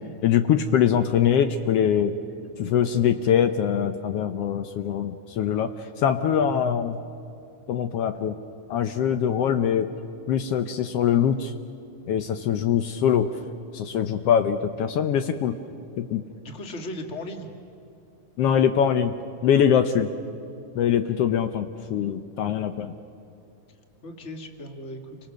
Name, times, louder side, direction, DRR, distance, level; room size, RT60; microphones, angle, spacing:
voice 1, 0.2-2.2 2.6-5.7 6.0-7.0 7.7-8.4 8.7-9.9 10.3-11.5 12.1-13.3 13.7-15.6 16.0-16.2 18.4-19.1 19.4-20.1 20.7-22.9, left 8 dB, 90° left, 8 dB, 1.3 m, -23 dB
voice 2, 16.4-17.5 24.0-25.2, left 1 dB, 25° left, 4 dB, 1.6 m, -37 dB
29.5 x 25.0 x 6.4 m, 2.8 s
omnidirectional pair, 3.8 m